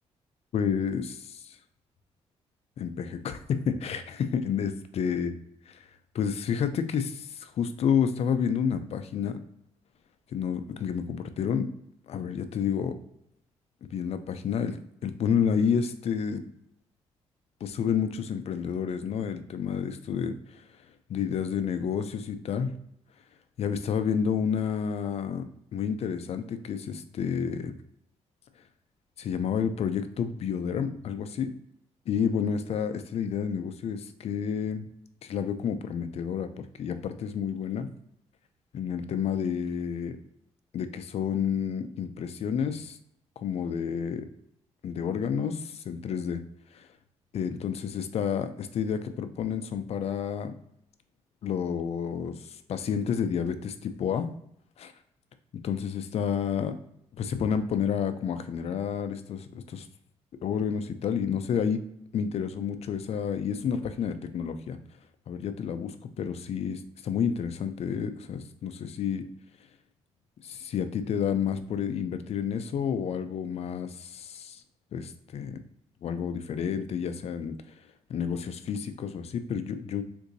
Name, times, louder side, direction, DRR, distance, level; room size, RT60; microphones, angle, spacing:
voice 1, 0.5-1.6 2.8-5.3 5.7-5.9 6.1-9.4 10.3-11.7 12.1-13.0 13.8-14.8 15.0-16.4 17.6-20.6 21.1-22.7 23.6-25.4 25.7-27.8 29.2-31.5 32.1-34.9 35.2-37.9 38.7-40.2 40.7-43.0 43.4-44.3 44.8-46.4 46.7-46.9 47.3-50.5 51.4-54.3 54.8-54.9 55.6-56.7 57.2-59.9 60.4-61.8 62.1-64.8 65.3-69.2 70.4-74.6 74.9-75.6 76.0-77.6 78.1-80.0, left 7 dB, 60° left, 10 dB, 0.4 m, -30 dB
3.8 x 2.6 x 2.6 m, 0.73 s
cardioid pair, 85°, 12 cm